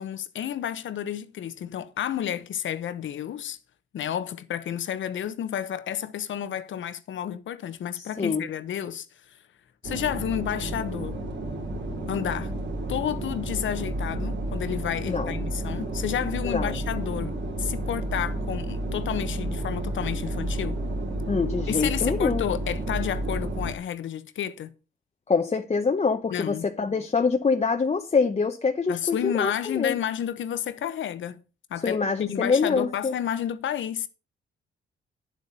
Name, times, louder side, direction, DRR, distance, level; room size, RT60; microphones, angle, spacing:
voice 1, 0.0-3.6 3.9-9.1 9.8-11.2 12.1-12.5 12.9-20.8 21.7-24.7 26.3-26.7 28.9-31.4 31.7-34.1, left 10 dB, 70° left, 1.1 m, -31 dB
voice 2, 7.9-8.4 15.1-15.3 16.4-16.7 21.3-22.4 25.3-30.0 31.8-33.1, left 5 dB, 30° left, 0.9 m, -25 dB
sound 1, 9.8-23.7, right 1 dB, 65° right, 3.3 m, -31 dB
9.8 x 7.7 x 5.6 m
cardioid pair, 70°, 20 cm